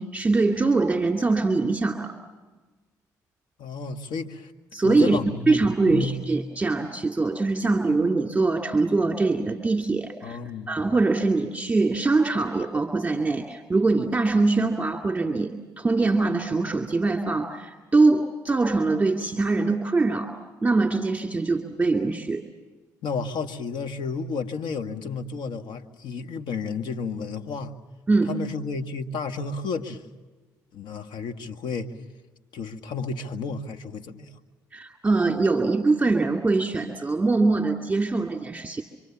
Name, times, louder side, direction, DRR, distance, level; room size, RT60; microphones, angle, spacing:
voice 1, 0.0-2.1 4.7-5.2 5.5-10.4 10.7-20.4 20.6-22.4 28.1-28.4 34.7-38.8, right 3 dB, 15° right, 3 dB, 2.3 m, -23 dB
voice 2, 3.6-4.5 4.8-5.6 5.9-6.2 10.2-10.7 23.0-27.7 28.3-30.0 30.7-31.9 32.5-34.3, left 4 dB, 65° left, 8 dB, 1.7 m, -32 dB
26.5 x 25.0 x 7.2 m, 1.3 s
supercardioid pair, 60°, 8 cm